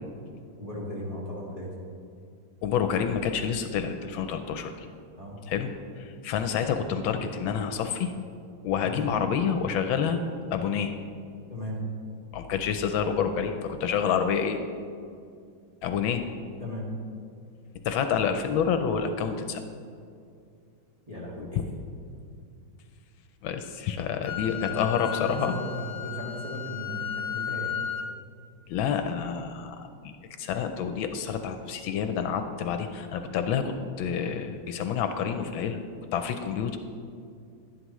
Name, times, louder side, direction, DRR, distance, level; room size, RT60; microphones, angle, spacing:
voice 1, 0.6-1.7 5.2-5.4 8.8-9.0 11.5-11.8 16.6-16.9 21.1-21.6 24.5-24.8 25.1-27.7, left 1 dB, 20° right, -5 dB, 2.0 m, -36 dB
voice 2, 2.6-4.9 5.5-8.1 8.6-10.2 10.5-10.9 12.3-14.6 15.8-16.2 17.8-19.6 21.6-21.7 23.4-25.5 28.7-30.1 30.4-35.8 36.1-36.8, left 7 dB, 80° left, 7 dB, 1.3 m, -28 dB
Wind instrument woodwind instrument, 24.2-28.1, left 9 dB, 50° left, 0.8 m, -34 dB
11.5 x 11.5 x 3.1 m, 2.3 s
omnidirectional pair, 2.2 m